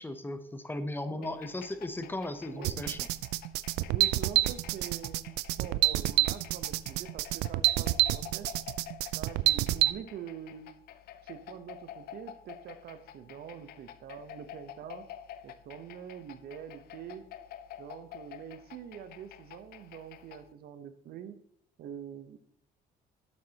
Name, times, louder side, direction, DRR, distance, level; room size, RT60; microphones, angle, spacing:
voice 1, 0.0-3.0, left 1 dB, 10° left, 10 dB, 0.8 m, -36 dB
voice 2, 1.0-1.4 2.5-3.0 3.9-5.2 5.6-8.6 9.1-10.7 11.2-15.1 15.4-17.3 17.8-21.4 21.8-22.4, right 9 dB, 65° right, 10 dB, 0.9 m, -45 dB
sound 1, 1.2-20.5, left 10 dB, 65° left, 0.6 m, -49 dB
sound 2, 2.6-9.9, right 17 dB, 85° right, 0.4 m, -27 dB
11.5 x 7.7 x 2.9 m, 0.72 s
cardioid pair, 110°, 17 cm